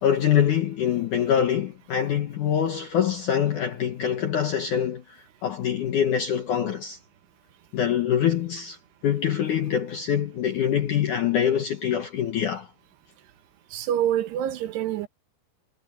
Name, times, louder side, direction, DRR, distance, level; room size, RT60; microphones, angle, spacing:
voice 1, 0.0-7.0 7.7-8.8 9.0-12.7, left 9 dB, 70° left, 2.0 m, -24 dB
voice 2, 13.7-15.1, right 10 dB, 70° right, 3.1 m, -26 dB
omnidirectional pair, 5.3 m